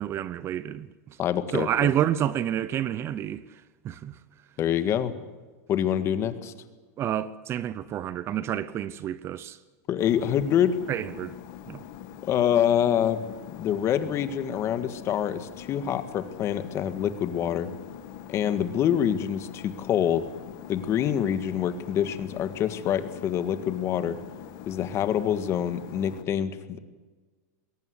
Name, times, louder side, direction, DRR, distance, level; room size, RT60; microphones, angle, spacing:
voice 1, 0.0-1.2 1.5-4.2 7.0-9.6 10.9-11.3 11.7-11.8, right 11 dB, 30° right, 0.8 m, -29 dB
voice 2, 1.2-1.9 4.6-5.1 5.7-6.5 9.9-10.8 12.2-13.2 13.5-17.7 18.3-20.3 20.7-24.2 24.7-26.8, left 9 dB, 30° left, 1.8 m, -26 dB
sound 1, 10.0-26.2, left 11 dB, 45° left, 1.7 m, -43 dB
21.5 x 18.0 x 9.7 m
supercardioid pair, 145°, 9 cm